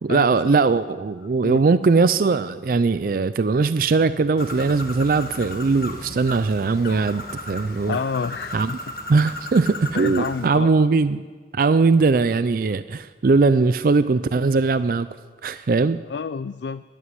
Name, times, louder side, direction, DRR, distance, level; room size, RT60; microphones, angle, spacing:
voice 1, 0.0-8.0 8.5-8.7 9.1-11.2 11.5-15.1 15.4-16.0, right 4 dB, 55° right, 13 dB, 0.4 m, -20 dB
Bird, 4.4-10.5, left 2 dB, 55° left, 1.4 m, -35 dB
voice 2, 7.9-8.8 9.9-10.7 16.1-16.8, left 5 dB, 75° left, 13 dB, 0.4 m, -28 dB
13.5 x 11.5 x 9.5 m, 1.5 s
head